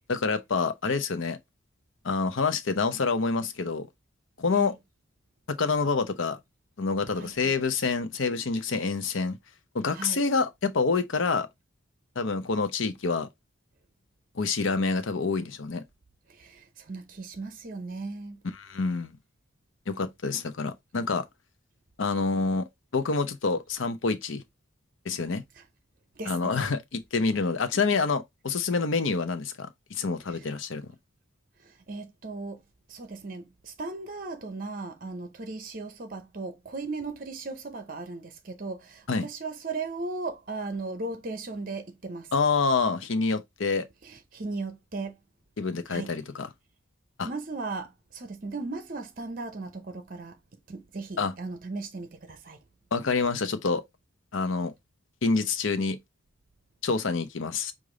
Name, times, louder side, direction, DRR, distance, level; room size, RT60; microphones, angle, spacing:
voice 1, 0.1-1.4 2.0-3.9 4.4-4.7 5.5-6.4 6.8-9.4 9.7-11.5 12.2-13.3 14.3-15.8 18.6-19.2 19.9-21.2 22.0-24.4 25.0-25.4 26.3-30.9 39.1-39.3 42.3-43.9 45.6-46.5 47.2-47.3 51.2-51.3 52.9-53.8 54.3-54.7 55.2-56.0 56.8-57.7, left 4 dB, 70° left, 0.7 m, -27 dB
voice 2, 7.2-7.5 9.9-10.2 16.3-18.4 25.6-25.7 26.1-26.5 30.4-30.5 31.6-32.6 32.9-42.3 44.0-45.2 45.9-46.1 47.2-50.4 50.7-52.6, right 3 dB, 40° right, 0.7 m, -37 dB
4.9 x 2.5 x 3.8 m
head